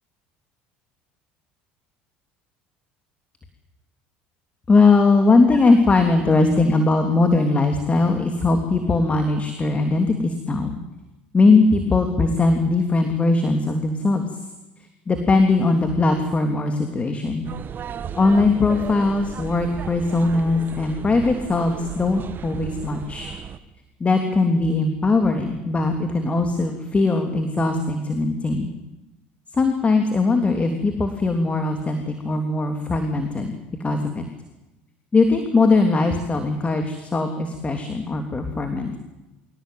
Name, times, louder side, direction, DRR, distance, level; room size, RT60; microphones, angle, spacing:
voice 1, 4.7-10.8 11.3-14.2 15.1-17.5 18.1-23.3 24.0-28.7 29.5-34.2 35.1-39.0, left 3 dB, 25° left, 5 dB, 3.1 m, -20 dB
sound 1, 17.4-23.6, right 8 dB, 40° right, 1.7 m, -35 dB
24.5 x 18.0 x 9.4 m, 1.0 s
hypercardioid pair, 80°, 5 cm